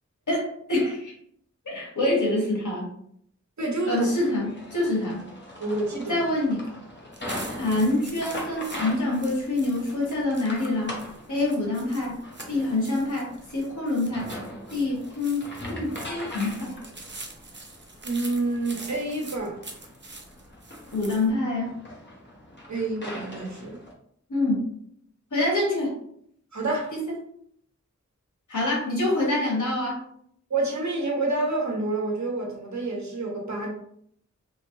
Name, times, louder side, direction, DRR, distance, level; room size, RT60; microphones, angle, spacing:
voice 1, 0.3-1.1 1.6-2.9 3.9-5.2 6.1-6.6 7.5-10.9 11.3-12.2 12.5-14.3 14.7-16.8 20.9-21.7 24.3-24.7 25.3-25.9 26.9-27.0 28.5-30.0, left 2 dB, 90° left, -3 dB, 1.2 m, -26 dB
voice 2, 3.6-4.1 5.6-6.2 18.0-19.6 22.7-23.8 26.5-26.9 30.5-33.7, right 2 dB, 75° right, 0 dB, 0.9 m, -28 dB
sound 1, 4.1-23.9, left 1 dB, 40° left, 0.9 m, -41 dB
sound 2, 7.1-21.3, right 3 dB, 40° right, 0.6 m, -45 dB
3.1 x 2.8 x 2.7 m, 0.68 s
wide cardioid pair, 55°, 29 cm